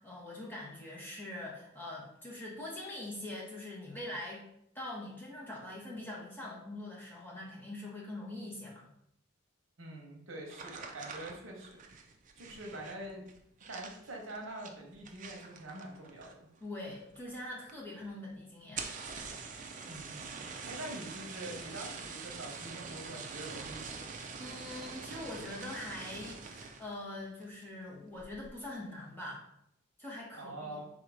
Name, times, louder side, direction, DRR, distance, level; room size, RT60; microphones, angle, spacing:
voice 1, 0.0-4.5 4.7-8.9 16.6-18.9 24.4-29.4 30.0-30.8, left 1 dB, 10° left, -5 dB, 1.0 m, -43 dB
voice 2, 9.8-11.8 12.4-13.3 13.7-16.5 19.8-20.4 20.7-23.9 30.3-30.9, right 1 dB, 65° right, 0 dB, 1.0 m, -45 dB
sound 1, 10.5-16.6 16.9-17.4 17.7-17.8 18.0-18.1 18.6-26.9 27.4-27.8 28.2-28.5, right 5 dB, 35° right, 0.4 m, -45 dB
3.8 x 2.7 x 4.7 m, 0.76 s
head